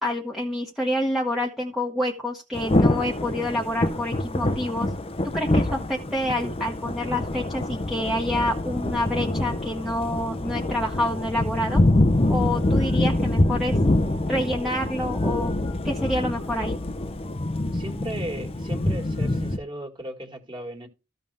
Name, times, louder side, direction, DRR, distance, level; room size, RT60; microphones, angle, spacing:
voice 1, 0.0-4.9 5.3-11.8 12.3-13.7 14.3-15.5 15.8-16.8, left 1 dB, ahead, 1.1 m, -27 dB
Thunder / Rain, 2.5-19.6, left 1 dB, 30° left, 0.7 m, -25 dB
voice 2, 17.7-20.9, right 1 dB, 25° right, 2.0 m, -36 dB
14.5 x 5.3 x 3.4 m
head